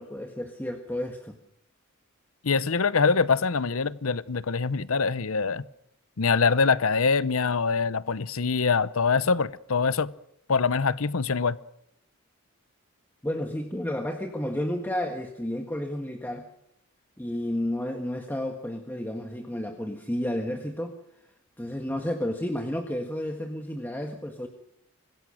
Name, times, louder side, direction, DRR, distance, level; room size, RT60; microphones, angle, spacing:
voice 1, 0.0-1.4 13.2-16.4 17.2-20.9 21.6-24.5, left 1 dB, 10° left, 1.6 m, -31 dB
voice 2, 2.4-5.6 6.2-10.1 10.5-11.6, left 5 dB, 70° left, 0.8 m, -24 dB
25.5 x 20.5 x 6.5 m
head